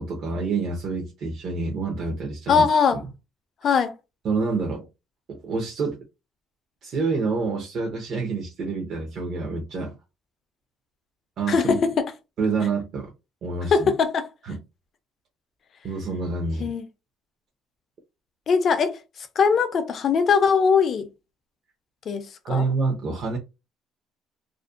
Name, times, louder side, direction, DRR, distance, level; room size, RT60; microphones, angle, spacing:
voice 1, 0.0-3.0 4.2-4.8 5.3-6.0 6.8-10.0 11.4-11.8 12.4-13.1 13.4-13.9 14.4-14.6 15.8-16.7 22.4-23.4, right 4 dB, 50° right, 0.6 m, -27 dB
voice 2, 2.5-3.0 3.6-3.9 11.5-12.1 13.7-14.3 16.6-16.8 18.5-19.0 19.4-21.1 22.1-22.7, left 6 dB, 40° left, 0.4 m, -21 dB
2.4 x 2.1 x 2.4 m
cardioid pair, 150°, 0 cm